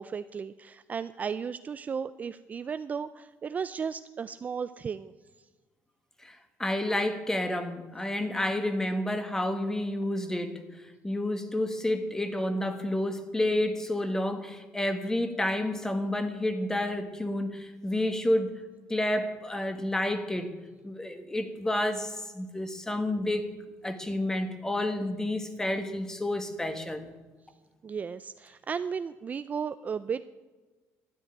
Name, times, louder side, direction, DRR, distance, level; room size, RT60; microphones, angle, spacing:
voice 1, 0.0-5.1 27.8-30.2, right 6 dB, 30° right, 13 dB, 0.4 m, -35 dB
voice 2, 6.2-10.6 11.0-18.6 18.9-20.5 20.8-23.5 23.8-27.1, left 1 dB, 10° left, 8 dB, 1.5 m, -30 dB
13.0 x 9.3 x 8.9 m, 1.3 s
cardioid pair, 125°, 5 cm